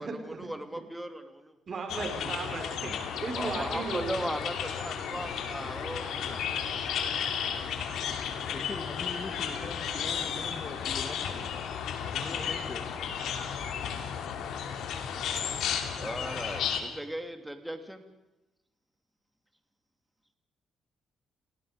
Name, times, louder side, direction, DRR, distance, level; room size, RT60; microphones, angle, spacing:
voice 1, 0.0-1.5 3.3-6.4 16.0-18.0, right 1 dB, 5° right, 7 dB, 2.9 m, -38 dB
voice 2, 1.7-2.9 3.2-4.3, right 4 dB, 45° right, 3 dB, 4.9 m, -35 dB
sound 1, 1.9-16.8, left 7 dB, 80° left, 2.9 m, -33 dB
voice 3, 8.3-11.5 12.1-12.9, left 3 dB, 35° left, 6 dB, 2.2 m, -42 dB
30.0 x 18.5 x 5.1 m, 1.0 s
cardioid pair, 90°, 0 cm